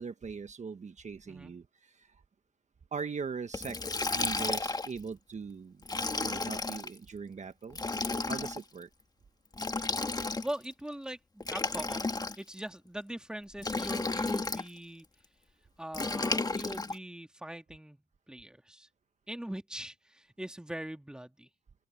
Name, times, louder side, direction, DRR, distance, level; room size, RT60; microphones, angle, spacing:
voice 1, 0.0-2.2 2.9-3.8 4.1-5.8 6.2-7.8 8.3-8.9, right 5 dB, 35° right, 1.4 m, -40 dB
Liquid, 3.5-5.0 5.8-6.9 7.7-8.6 9.5-10.7 11.4-12.6 13.6-14.7 15.9-17.0, left 3 dB, 20° left, 1.6 m, -33 dB
voice 2, 10.4-12.0 12.4-15.1 15.8-18.0 18.3-18.9 19.3-21.5, right 1 dB, 5° right, 2.0 m, -41 dB
cardioid pair, 90°, 20 cm